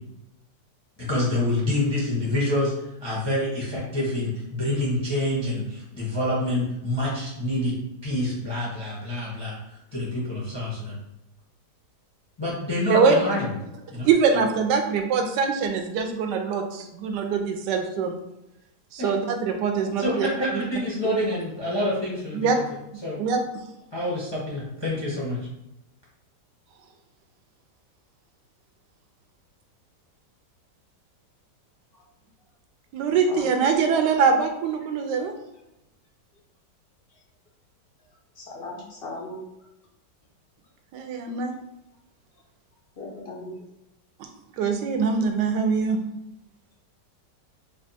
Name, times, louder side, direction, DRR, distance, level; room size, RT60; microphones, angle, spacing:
voice 1, 1.1-2.7 3.0-7.7 8.0-11.0 12.4-13.5 13.9-14.1 19.0-19.1 20.0-22.6 23.0-23.2 23.9-25.4, left 1 dB, 35° left, -6 dB, 0.4 m, -27 dB
voice 2, 14.0-18.2 18.9-20.3 20.5-20.6 21.0-21.2 22.3-22.6 22.9-23.6 32.9-35.3 40.9-41.5 44.6-46.0, right 5 dB, 75° right, 5 dB, 1.2 m, -23 dB
voice 3, 38.4-39.4 43.0-43.6, left 2 dB, 90° left, -3 dB, 0.5 m, -37 dB
3.3 x 2.2 x 4.0 m, 0.87 s
omnidirectional pair, 1.9 m